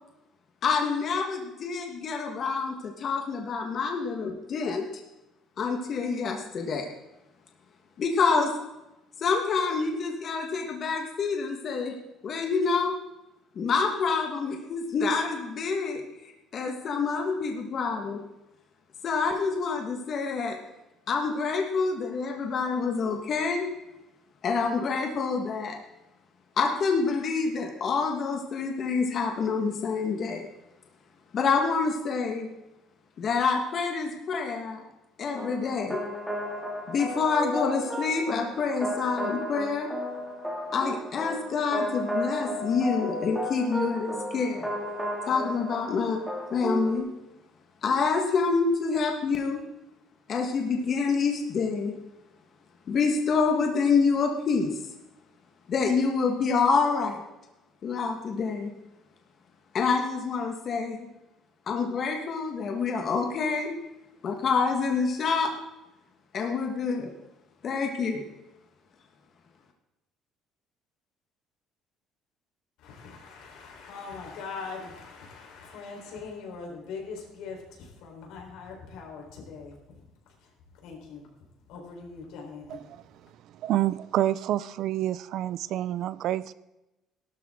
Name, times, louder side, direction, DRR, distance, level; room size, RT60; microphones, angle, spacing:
voice 1, 0.6-4.9 5.6-6.9 8.0-8.5 9.2-11.9 12.2-12.9 13.5-16.0 16.5-18.2 19.0-20.6 21.1-23.7 24.4-25.8 26.6-30.4 31.3-32.5 33.2-34.8 35.2-36.0 36.9-39.9 40.7-44.7 45.3-46.2 46.5-47.1 47.8-49.6 50.3-52.0 52.9-54.8 55.7-57.2 57.8-58.7 59.7-61.1 61.7-63.7 64.2-65.5 66.3-67.1 67.6-68.3, left 5 dB, 40° left, 3 dB, 1.5 m, -27 dB
sound 1, 35.4-47.0, equal, ahead, 2.5 m, -33 dB
voice 2, 72.8-80.5 80.8-81.3 81.7-82.8, left 4 dB, 80° left, 0 dB, 4.3 m, -42 dB
voice 3, 82.7-83.0 83.4-86.5, right 13 dB, 60° right, 17 dB, 0.5 m, -28 dB
16.5 x 12.5 x 3.8 m, 0.95 s
cardioid pair, 145°, 0 cm